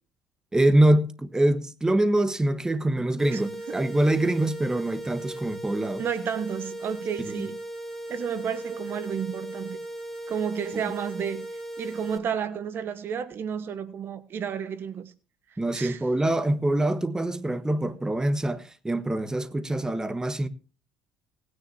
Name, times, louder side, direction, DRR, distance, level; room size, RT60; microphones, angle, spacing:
voice 1, 0.5-6.0 7.4-7.5 15.6-20.5, right 1 dB, 15° right, 1.3 m, -24 dB
sound 1, 3.2-12.2, right 1 dB, 5° left, 3.5 m, -38 dB
voice 2, 3.3-3.8 6.0-7.6 8.1-9.8 10.3-15.1 15.5-16.0, right 7 dB, 55° right, 1.2 m, -32 dB
19.0 x 9.9 x 2.7 m
supercardioid pair, 80°, 5 cm